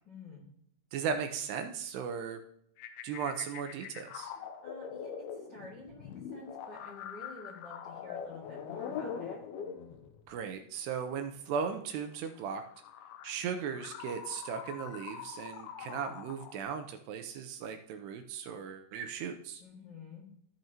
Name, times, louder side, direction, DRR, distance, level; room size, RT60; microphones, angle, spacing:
voice 1, 0.0-0.5 4.3-9.4 19.6-20.3, left 3 dB, 45° left, -3 dB, 1.5 m, -50 dB
voice 2, 0.9-2.4 3.0-4.3 10.3-12.6 13.2-19.6, right 6 dB, 80° right, 7 dB, 2.7 m, -37 dB
sound 1, 2.8-10.3 11.7-16.6, left 7 dB, 80° left, 2.4 m, -43 dB
14.5 x 6.5 x 2.9 m, 0.69 s
omnidirectional pair, 5.1 m